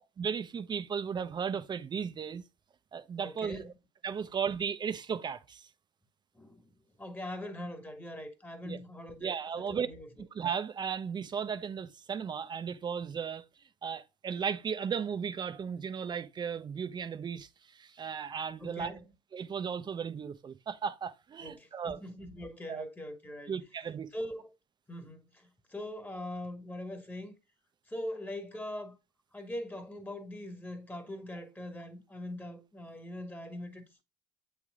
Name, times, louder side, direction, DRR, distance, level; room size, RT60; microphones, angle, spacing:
voice 1, 0.2-2.4 2.9-3.7 4.0-5.7 8.6-8.8 9.2-9.9 10.3-13.4 13.8-18.9 19.3-22.0 22.7-22.8 23.5-24.1, right 7 dB, 35° right, 0.9 m, -35 dB
voice 2, 3.2-3.7 6.3-10.1 18.6-19.0 21.4-23.5 24.1-24.5 24.9-27.3 27.9-29.0 29.3-34.0, left 1 dB, 15° left, 1.9 m, -42 dB
8.3 x 3.4 x 3.7 m
hypercardioid pair, 70°, 13 cm